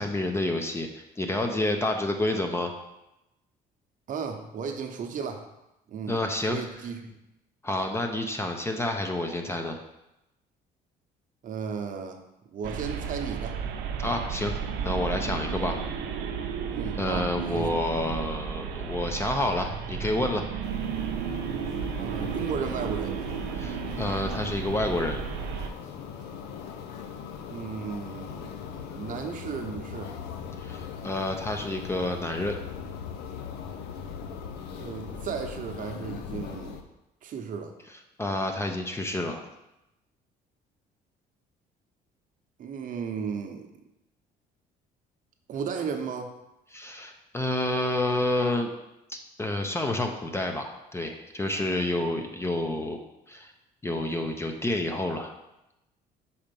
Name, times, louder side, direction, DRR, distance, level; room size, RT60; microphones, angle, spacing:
voice 1, 0.0-2.7 6.1-6.6 7.6-9.8 14.0-14.6 14.8-15.8 16.9-20.5 23.5-25.2 30.6-32.6 38.2-39.4 46.7-48.7 49.1-53.0 53.3-53.5 53.8-55.3, left 1 dB, 15° left, 4 dB, 0.6 m, -29 dB
voice 2, 4.1-5.5 5.9-6.2 6.5-7.1 11.4-12.2 12.5-13.6 16.7-17.8 22.0-23.2 27.5-30.1 34.7-36.8 37.2-37.7 42.6-43.7 45.5-46.3, right 6 dB, 50° right, 5 dB, 0.9 m, -35 dB
sound 1, 12.6-25.7, right 7 dB, 85° right, 0.6 m, -33 dB
sound 2, 20.6-36.8, left 7 dB, 85° left, 0.7 m, -40 dB
5.1 x 4.3 x 5.3 m, 0.91 s
cardioid pair, 110°, 17 cm